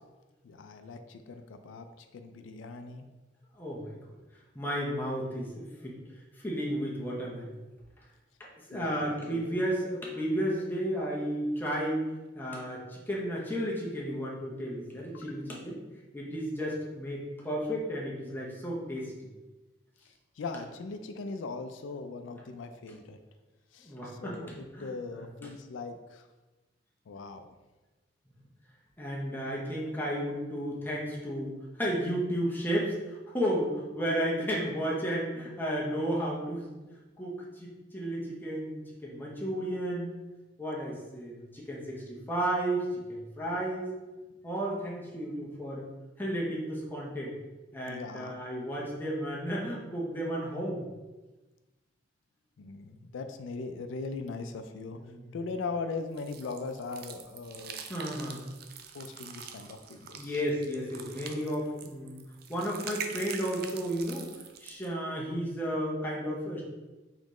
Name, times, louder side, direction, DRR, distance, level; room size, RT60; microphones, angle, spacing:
voice 1, 0.4-3.0 8.7-9.5 15.1-15.3 20.4-23.2 23.7-26.3 27.1-27.5 29.9-30.0 47.8-48.4 52.6-55.0 55.3-57.8 58.9-60.4, left 4 dB, 85° left, 7 dB, 0.4 m, -40 dB
voice 2, 3.6-3.9 4.5-6.0 6.4-7.5 8.4-12.0 12.3-15.8 16.1-19.1 23.8-24.4 24.7-25.5 29.0-36.7 37.2-40.1 40.6-43.9 44.4-45.9 46.2-47.3 47.7-50.8 54.9-55.3 57.9-58.5 60.2-62.2 62.5-64.3 64.6-66.6, equal, 10° left, -4 dB, 0.7 m, -33 dB
sound 1, 56.2-64.9, right 7 dB, 55° right, 0.4 m, -44 dB
4.1 x 3.9 x 3.1 m, 1.1 s
head